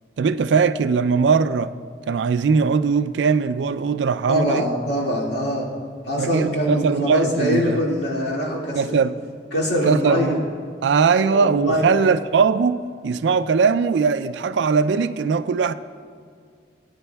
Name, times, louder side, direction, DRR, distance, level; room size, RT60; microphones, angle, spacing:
voice 1, 0.2-1.7 2.1-4.7 6.2-7.8 8.8-9.1 9.8-10.4 10.8-12.8 13.0-15.7, right 5 dB, 75° right, 0.3 m, -20 dB
voice 2, 4.3-5.7 6.1-9.0 9.5-10.3 11.3-11.8, equal, 65° left, 2.1 m, -23 dB
17.5 x 9.5 x 2.3 m
head